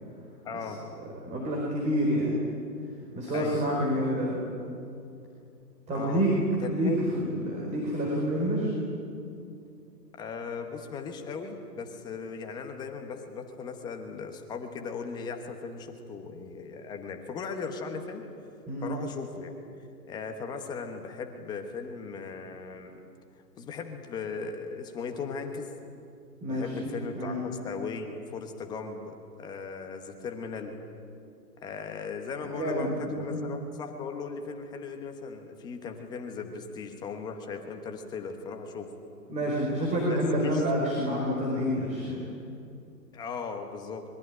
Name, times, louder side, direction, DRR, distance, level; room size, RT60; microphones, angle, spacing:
voice 1, 0.4-0.8 3.3-3.7 5.9-6.2 6.6-7.1 10.2-18.2 18.8-19.5 20.1-22.9 23.6-25.7 26.5-30.7 31.6-38.9 40.1-40.6 43.1-44.0, left 5 dB, 10° left, 5 dB, 1.1 m, -38 dB
voice 2, 1.2-2.4 3.1-4.4 5.9-6.3 6.7-8.7 18.7-18.9 26.4-26.9 27.1-27.4 32.3-33.4 39.3-42.3, equal, 15° right, -3 dB, 4.6 m, -28 dB
25.0 x 22.5 x 9.9 m, 2.5 s
hypercardioid pair, 145°, 49 cm